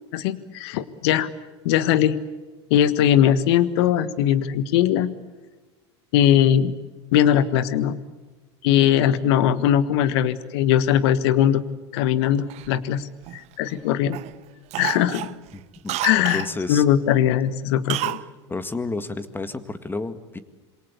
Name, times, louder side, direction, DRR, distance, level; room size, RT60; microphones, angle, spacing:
voice 1, 0.1-1.3 1.6-2.2 2.7-5.1 6.1-6.7 7.1-7.9 8.6-11.6 11.9-14.2 14.8-15.3 16.0-18.2, left 10 dB, 65° left, 15 dB, 1.6 m, -20 dB
Cough, 12.5-13.8 14.1-14.3 14.7-16.5 17.9-18.3 18.5-18.6, right 18 dB, 50° right, 0.7 m, -30 dB
voice 2, 15.5-16.8 18.5-20.4, left 3 dB, 15° left, 12 dB, 2.0 m, -31 dB
27.0 x 23.0 x 8.3 m, 1.2 s
hypercardioid pair, 80°, 15 cm